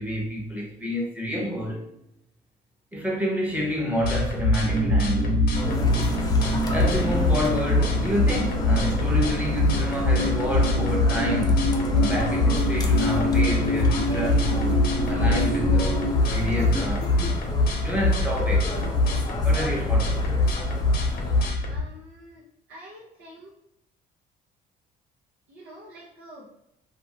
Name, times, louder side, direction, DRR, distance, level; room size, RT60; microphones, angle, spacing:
voice 1, 0.0-1.9 2.9-5.7 6.7-11.7 11.9-16.0 16.3-17.1 17.7-18.7 19.4-20.3, equal, 10° right, 0.9 m, -29 dB
sound 1, 4.0-21.8, left 2 dB, 60° left, 0.8 m, -24 dB
sound 2, 4.6-16.1, right 1 dB, 45° right, 0.4 m, -28 dB
sound 3, 5.5-21.5, left 2 dB, 25° left, 0.5 m, -32 dB
voice 2, 21.7-23.5 25.5-26.5, equal, 70° right, 0.7 m, -47 dB
2.7 x 2.6 x 2.9 m
cardioid pair, 110°, 17 cm